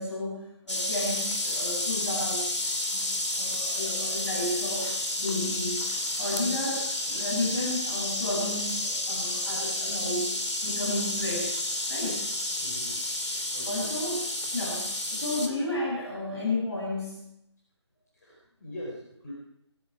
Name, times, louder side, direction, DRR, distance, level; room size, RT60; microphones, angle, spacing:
voice 1, 0.0-2.5 2.9-3.1 3.4-4.9 5.2-10.3 10.6-12.3 13.7-14.2 14.5-17.3, left 1 dB, 60° left, -6 dB, 7.7 m, -32 dB
sound 1, 0.7-15.5, left 1 dB, 75° left, 2.9 m, -31 dB
voice 2, 12.6-13.0 13.5-13.9 18.1-19.3, left 1 dB, 35° left, -4 dB, 4.2 m, -42 dB
22.0 x 13.5 x 4.8 m, 0.79 s
figure-of-eight pair, 160°, 15 cm